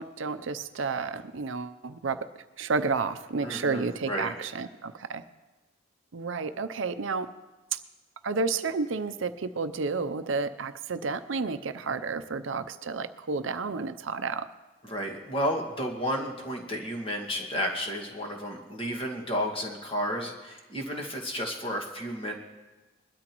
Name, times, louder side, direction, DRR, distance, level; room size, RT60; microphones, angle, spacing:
voice 1, 0.0-2.3 2.6-5.2 6.1-7.3 7.7-7.8 8.2-14.5, right 4 dB, 70° right, 11 dB, 0.6 m, -31 dB
voice 2, 3.4-4.3 14.8-22.4, equal, 25° left, 0 dB, 1.9 m, -32 dB
21.5 x 12.5 x 3.0 m, 1.2 s
head